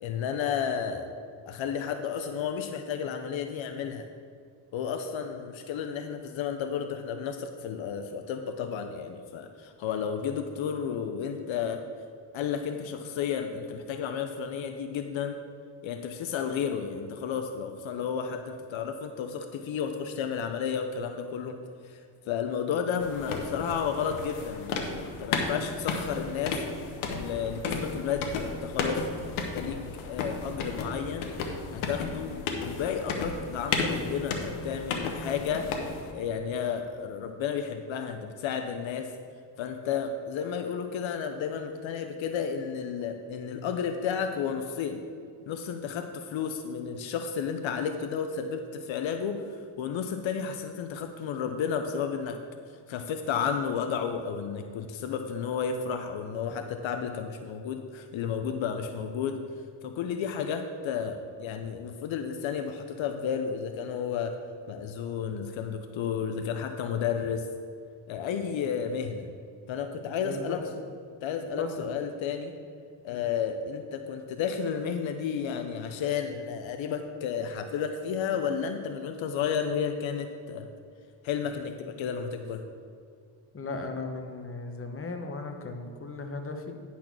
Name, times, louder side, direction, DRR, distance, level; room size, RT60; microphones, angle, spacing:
voice 1, 0.0-1.1 1.5-4.1 4.7-11.8 12.3-15.4 15.8-21.6 21.8-22.0 22.3-26.6 27.1-31.3 31.7-35.7 36.1-39.1 39.6-45.0 45.5-52.4 52.9-59.4 59.8-64.3 64.7-67.5 68.1-69.3 69.7-70.6 71.2-72.5 73.0-80.7 81.2-82.6, left 7 dB, 70° left, 6 dB, 0.8 m, -32 dB
sound 1, 23.0-36.1, left 4 dB, 90° left, 1.1 m, -34 dB
voice 2, 70.2-70.6 71.6-71.9 73.1-73.2 83.5-86.7, left 3 dB, 25° left, 4 dB, 1.1 m, -36 dB
10.0 x 4.3 x 6.0 m, 2.2 s
cardioid pair, 75°, 48 cm